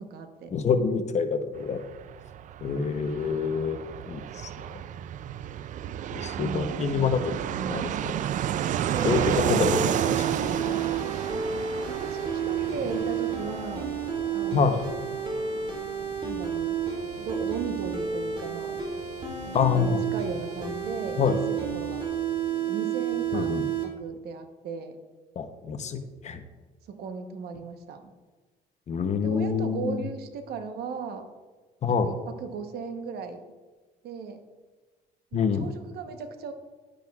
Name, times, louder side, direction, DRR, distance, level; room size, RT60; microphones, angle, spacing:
voice 1, 0.0-0.5 6.2-7.9 11.9-13.9 14.3-14.8 16.2-16.8 17.2-18.8 19.4-22.0 22.7-25.0 26.8-28.1 29.2-31.3 31.9-33.4 34.0-34.4 35.3-36.5, right 5 dB, 70° right, 7 dB, 1.0 m, -37 dB
voice 2, 0.5-1.8 2.6-3.8 4.1-4.5 6.1-7.2 7.7-7.9 9.0-10.4 14.5-14.8 19.5-20.0 21.2-21.4 23.3-23.6 25.4-26.4 28.9-30.0 31.8-32.1 35.3-35.7, left 6 dB, 40° left, 8 dB, 0.8 m, -26 dB
Fixed-wing aircraft airplane, 1.5-19.9 20.2-20.3 20.5-21.2, right 10 dB, 50° right, 0.4 m, -32 dB
sound 1, 8.9-23.8, right 6 dB, 30° right, 2.3 m, -31 dB
11.0 x 10.0 x 2.4 m, 1.3 s
cardioid pair, 110°, 17 cm